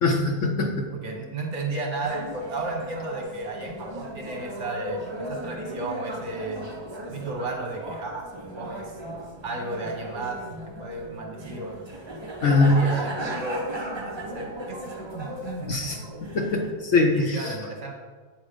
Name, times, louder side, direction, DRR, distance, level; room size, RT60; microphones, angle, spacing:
voice 1, 0.0-0.9 12.4-12.8 15.7-17.6, left 2 dB, 60° left, 2 dB, 1.0 m, -22 dB
voice 2, 0.9-6.7 7.1-8.2 8.5-8.9 9.4-10.4 10.8-11.8 12.4-13.6 14.0-14.8 15.1-15.9 17.1-17.9, right 2 dB, 50° right, 1 dB, 1.2 m, -34 dB
sound 1, 2.0-16.7, right 1 dB, 35° right, 0.4 m, -36 dB
8.3 x 4.4 x 5.1 m, 1.5 s
omnidirectional pair, 1.7 m